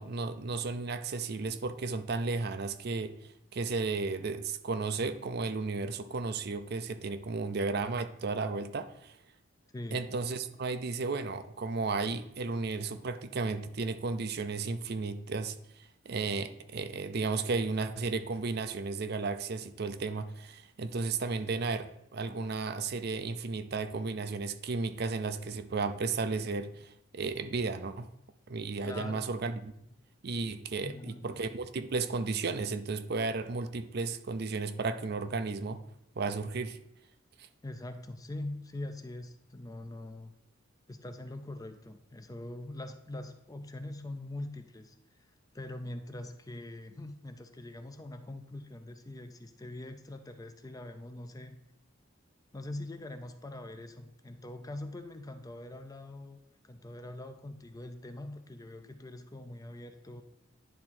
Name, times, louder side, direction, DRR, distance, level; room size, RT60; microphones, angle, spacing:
voice 1, 0.0-3.1 3.5-9.1 9.9-15.5 16.1-28.1 28.5-29.7 30.2-35.8 36.2-36.8, right 4 dB, 55° right, 10 dB, 0.5 m, -34 dB
voice 2, 28.8-29.3 30.8-31.4 37.6-40.3 40.9-44.9 45.5-51.6 52.5-60.2, left 1 dB, 20° left, 7 dB, 0.5 m, -43 dB
10.5 x 3.6 x 4.4 m, 0.76 s
head